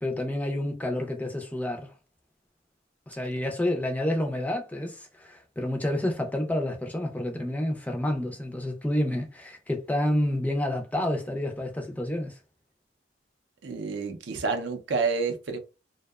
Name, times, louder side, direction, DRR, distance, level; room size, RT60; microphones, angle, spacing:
voice 1, 0.0-1.9 3.1-12.4, left 1 dB, 10° left, 0.4 m, -29 dB
voice 2, 13.6-15.6, right 4 dB, 70° right, 0.5 m, -29 dB
2.7 x 2.1 x 2.3 m
head